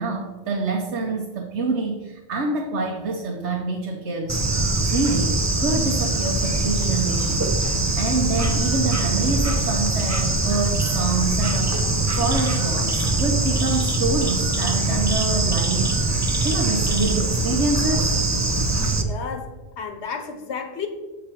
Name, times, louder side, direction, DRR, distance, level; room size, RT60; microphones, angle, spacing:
voice 1, 0.0-4.4 4.9-16.0 16.4-18.2, right 3 dB, 80° right, 2 dB, 1.1 m, -26 dB
Bird / Insect, 4.3-19.0, right 2 dB, 20° right, 0.5 m, -22 dB
voice 2, 19.0-20.9, left 6 dB, 75° left, 6 dB, 1.2 m, -32 dB
7.5 x 5.1 x 4.5 m, 1.2 s
omnidirectional pair, 1.2 m